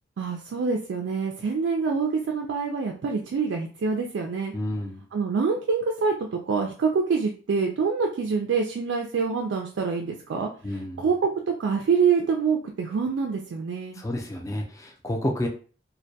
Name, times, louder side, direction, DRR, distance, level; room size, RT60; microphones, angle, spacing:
voice 1, 0.2-4.5 5.1-11.3 11.6-14.0, right 5 dB, 75° right, 1 dB, 0.3 m, -26 dB
voice 2, 4.5-5.0 10.6-11.1 14.0-15.5, left 1 dB, 15° left, 2 dB, 0.4 m, -30 dB
2.2 x 2.2 x 2.7 m, 0.38 s
head